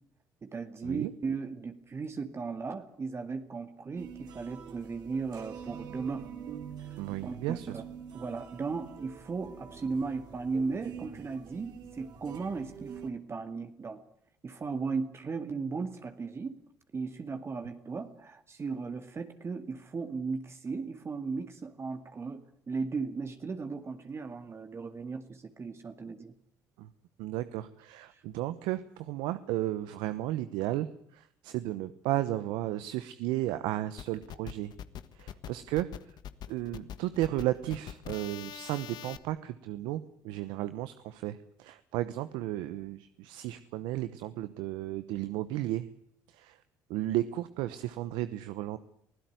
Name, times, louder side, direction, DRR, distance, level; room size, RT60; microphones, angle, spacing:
voice 1, 0.4-6.3 6.8-7.8 8.1-14.0 14.4-16.6 16.9-26.3 28.1-28.2, right 4 dB, 35° right, 7 dB, 2.2 m, -36 dB
sound 1, 4.0-13.1, right 7 dB, 60° right, 4.2 m, -46 dB
voice 2, 7.0-7.8 26.8-26.9 27.2-34.7 35.1-35.9 36.5-45.9 46.3-46.6 46.9-48.8, right 14 dB, 85° right, 13 dB, 1.0 m, -34 dB
sound 2, 34.0-39.2, left 10 dB, 65° left, 1.5 m, -43 dB
24.0 x 16.0 x 9.3 m, 0.67 s
supercardioid pair, 85°, 8 cm